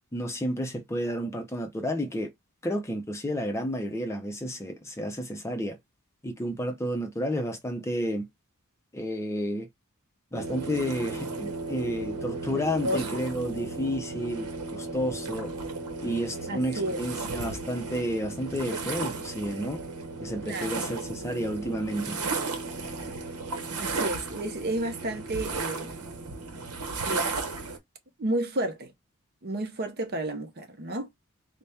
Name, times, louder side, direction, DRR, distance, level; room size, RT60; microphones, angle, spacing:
voice 1, 0.1-2.3 2.6-5.8 6.2-8.3 8.9-9.7 10.3-15.5 16.0-19.8 20.2-22.2, equal, 10° left, 0.5 m, -31 dB
sound 1, 10.3-27.8, right 3 dB, 90° right, 0.8 m, -34 dB
voice 2, 12.5-13.1 16.5-17.0 20.4-20.9 23.8-25.9 27.0-27.3 28.2-28.9 29.4-31.1, right 1 dB, 45° right, 0.8 m, -31 dB
4.1 x 2.1 x 3.3 m
head